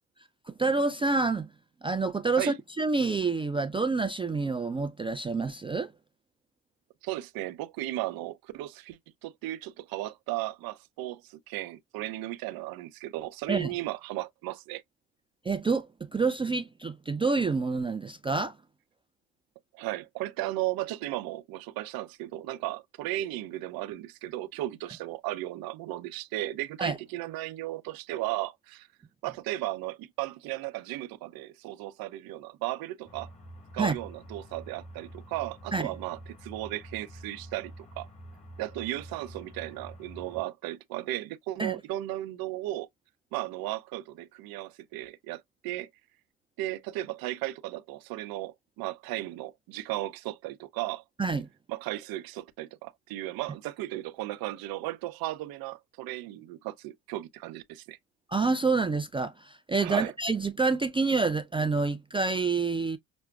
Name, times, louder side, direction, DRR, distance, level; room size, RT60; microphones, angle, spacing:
voice 1, 0.5-1.5 1.8-5.9 13.5-13.7 15.4-18.6 26.8-27.0 33.8-33.9 35.7-35.9 41.6-41.8 51.2-51.5 58.3-63.0, right 4 dB, 15° right, 0.3 m, -28 dB
voice 2, 7.0-14.8 19.7-28.9 29.2-33.3 33.7-38.1 38.6-42.9 43.3-45.9 46.6-51.0 51.7-58.0 59.8-60.1, right 16 dB, 65° right, 0.7 m, -35 dB
sound 1, 33.1-40.4, right 1 dB, 20° left, 2.1 m, -48 dB
6.0 x 2.1 x 2.3 m
supercardioid pair, 80°, 39 cm